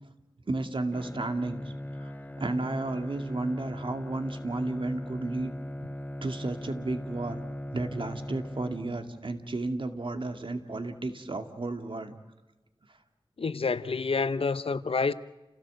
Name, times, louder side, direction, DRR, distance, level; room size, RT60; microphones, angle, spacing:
voice 1, 0.5-1.6 2.4-5.5 6.2-7.4 7.7-12.2, right 2 dB, 60° right, 2.2 m, -32 dB
Bowed string instrument, 0.9-9.2, left 1 dB, 15° left, 1.1 m, -39 dB
voice 2, 13.4-15.1, left 4 dB, 80° left, 0.9 m, -28 dB
29.5 x 17.0 x 7.8 m
wide cardioid pair, 70°, 10 cm